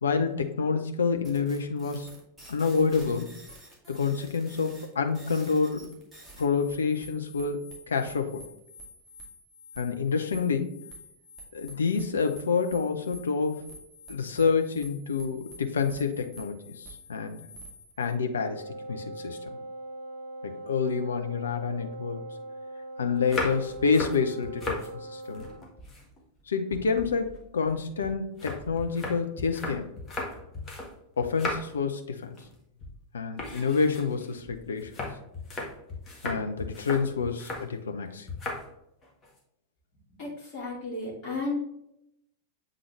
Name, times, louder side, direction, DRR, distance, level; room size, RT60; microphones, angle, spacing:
voice 1, 0.0-2.1 2.5-3.3 3.9-5.9 6.4-8.4 9.8-10.8 11.5-13.6 14.1-17.4 18.0-19.4 20.4-22.2 23.0-24.8 25.1-25.5 26.5-29.9 31.2-32.3 33.1-34.9 36.2-38.3, left 5 dB, 70° left, 6 dB, 0.7 m, -28 dB
sound 1, 1.2-18.1, equal, ahead, 2.1 m, -49 dB
Wind instrument woodwind instrument, 18.4-25.7, right 1 dB, 65° right, 0.6 m, -41 dB
sound 2, 23.2-24.9 25.2-26.4 26.7-30.9 31.2-31.8 32.2-32.5 32.8-33.0 33.4-37.7 38.3-38.7 39.0-39.4, left 2 dB, 20° left, 1.6 m, -37 dB
voice 2, 40.1-41.6, left 3 dB, 40° left, -5 dB, 2.5 m, -33 dB
7.8 x 3.9 x 3.2 m, 0.79 s
figure-of-eight pair, 90°, 0 cm